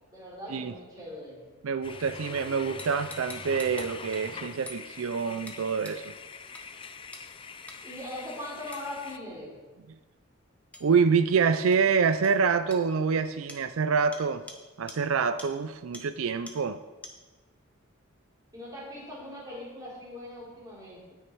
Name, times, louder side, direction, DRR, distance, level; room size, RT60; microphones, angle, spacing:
voice 1, 0.1-1.4 7.8-9.6 18.5-21.1, left 1 dB, 20° right, -6 dB, 3.7 m, -40 dB
voice 2, 1.6-6.1 10.8-14.4 14.8-16.8, right 5 dB, 80° right, 12 dB, 0.4 m, -26 dB
sound 1, 1.8-9.2, left 5 dB, 25° left, 0.4 m, -43 dB
sound 2, 2.8-4.2 4.7-4.8 5.5-5.6 5.8-6.0 6.5-6.6 7.1-7.3 7.7-7.8 8.7-8.9 10.7-10.9 11.7-11.8 12.2-12.3 12.7-12.8 13.5-13.6 14.1-14.2 14.5-14.6 14.9-15.0 15.4-15.5 15.9-16.0 16.5-16.6 17.0-17.1, left 1 dB, 5° left, 1.0 m, -44 dB
17.5 x 6.4 x 4.6 m, 1.3 s
head